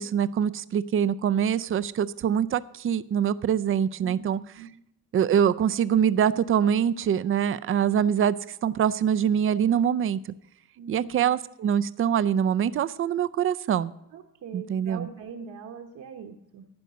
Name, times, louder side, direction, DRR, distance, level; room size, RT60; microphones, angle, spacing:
voice 1, 0.0-4.4 5.1-8.4 8.6-10.2 10.9-13.9 14.5-15.1, right 8 dB, 35° right, 15 dB, 0.5 m, -24 dB
voice 2, 4.0-4.7 10.7-11.3 14.1-16.7, right 6 dB, 60° right, 1 dB, 1.2 m, -42 dB
11.5 x 9.0 x 6.4 m, 0.81 s
cardioid pair, 120°, 36 cm